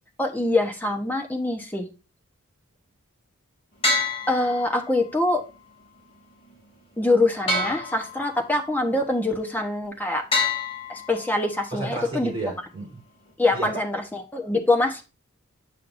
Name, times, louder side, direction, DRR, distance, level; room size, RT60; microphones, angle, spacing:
voice 1, 0.2-1.9 4.3-5.4 7.0-10.3 10.9-12.3 13.4-15.0, left 2 dB, 10° left, 1.0 m, -24 dB
sound 1, 3.8-5.1 7.5-8.6 10.3-11.5, left 2 dB, 30° left, 2.7 m, -27 dB
voice 2, 11.7-13.0 13.5-13.8, right 3 dB, 25° right, 3.8 m, -32 dB
8.4 x 6.5 x 2.6 m
head